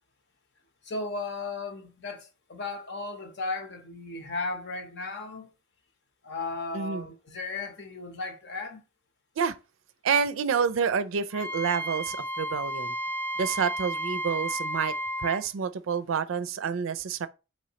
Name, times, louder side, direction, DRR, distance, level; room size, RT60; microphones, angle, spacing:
voice 1, 0.8-5.5 6.2-8.8, left 3 dB, 60° left, 0.8 m, -35 dB
voice 2, 10.0-13.0 13.4-17.3, right 6 dB, 80° right, 0.4 m, -28 dB
Wind instrument woodwind instrument, 11.3-15.4, right 1 dB, 10° left, 0.4 m, -32 dB
4.3 x 3.1 x 2.8 m
head